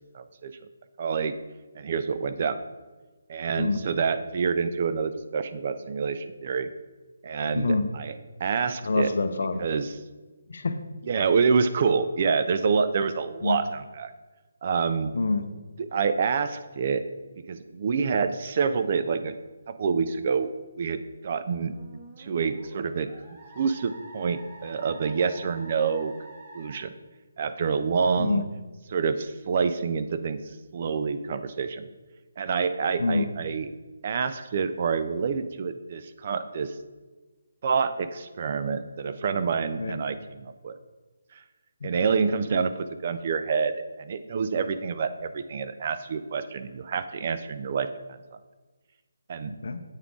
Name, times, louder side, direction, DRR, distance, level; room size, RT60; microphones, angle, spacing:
voice 1, 0.1-0.6 1.0-1.4 1.8-2.6 3.3-6.7 7.2-9.1 9.6-10.0 11.1-14.1 14.6-15.1 15.8-17.0 17.5-19.3 19.7-20.5 20.8-21.7 22.2-23.1 23.6-26.1 26.5-26.9 27.4-28.4 28.9-30.4 30.7-31.8 32.4-33.7 34.0-36.7 37.6-40.7 41.8-47.9 48.3-48.4 49.3-49.5, right 5 dB, 40° right, 11 dB, 0.3 m, -27 dB
voice 2, 7.5-7.9 8.9-9.6 10.5-10.7 13.4-13.6 15.1-15.5 28.2-28.5 33.0-33.3 39.8-40.0 41.8-41.9 49.5-49.8, left 3 dB, 65° left, 9 dB, 0.5 m, -26 dB
Musical instrument, 21.5-26.8, right 2 dB, 15° right, 1.1 m, -47 dB
8.1 x 3.6 x 3.6 m, 1.3 s
hypercardioid pair, 165°, 0 cm